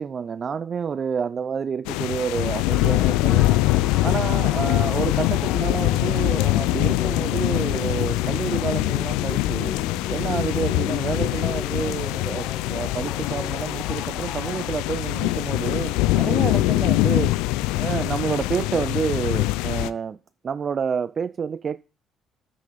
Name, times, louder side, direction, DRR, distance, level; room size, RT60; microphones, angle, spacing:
voice 1, 0.0-3.6 4.0-9.7 10.1-17.3 17.7-20.2 20.4-21.8, right 6 dB, 45° right, 0.3 m, -29 dB
sound 1, 1.8-19.9, left 18 dB, 80° left, 0.3 m, -23 dB
sound 2, 2.7-15.3, left 5 dB, 45° left, 1.6 m, -37 dB
7.6 x 6.3 x 5.0 m
supercardioid pair, 60°, 0 cm